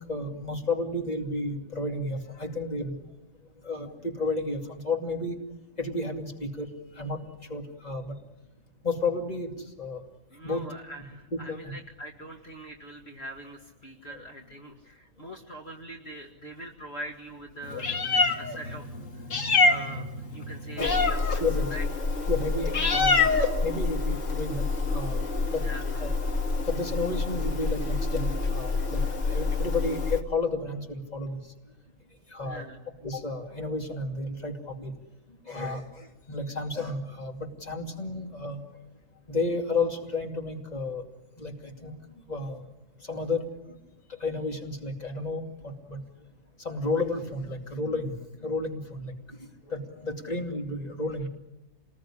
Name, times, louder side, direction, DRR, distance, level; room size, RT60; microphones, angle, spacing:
voice 1, 0.0-3.0 3.6-5.4 5.8-6.7 7.0-7.2 7.5-8.2 8.8-9.5 9.8-10.0 10.4-10.6 11.3-11.7 14.1-14.2 20.8-20.9 21.4-21.7 22.3-25.2 25.5-25.6 26.0-26.2 26.7-29.0 29.3-31.4 32.3-32.6 33.0-34.9 35.5-38.6 39.3-41.0 41.4-41.9 42.3-42.6 43.1-43.4 44.2-46.0 46.6-48.1 48.4-49.1 49.7-51.3, left 2 dB, 30° left, 2 dB, 2.7 m, -32 dB
voice 2, 10.3-21.4 21.7-21.9 25.6-26.0 32.4-32.8, right 1 dB, 50° left, 2 dB, 2.4 m, -43 dB
Meow, 17.6-30.2, left 3 dB, 65° left, 2.1 m, -27 dB
27.0 x 20.5 x 10.0 m, 1.0 s
omnidirectional pair, 1.4 m